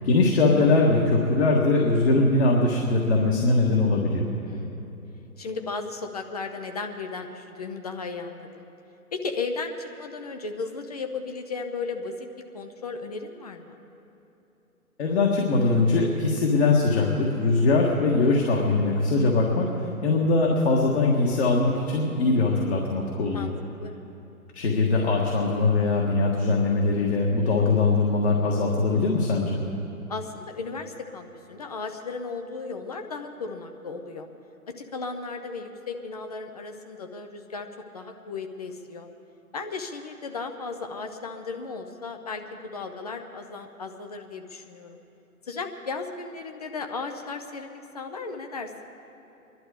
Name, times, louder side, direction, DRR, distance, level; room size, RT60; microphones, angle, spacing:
voice 1, 0.0-4.3 15.0-23.5 24.5-29.6, left 3 dB, 45° left, -1 dB, 1.7 m, -22 dB
voice 2, 4.4-5.0 5.4-8.6 9.1-12.3 12.5-13.8 23.3-23.5 23.8-23.9 30.1-34.3 34.7-37.7 37.9-39.1 39.5-45.0 45.4-48.7, left 4 dB, 25° left, 6 dB, 0.6 m, -35 dB
22.0 x 11.5 x 5.0 m, 3.0 s
figure-of-eight pair, 135°, 44 cm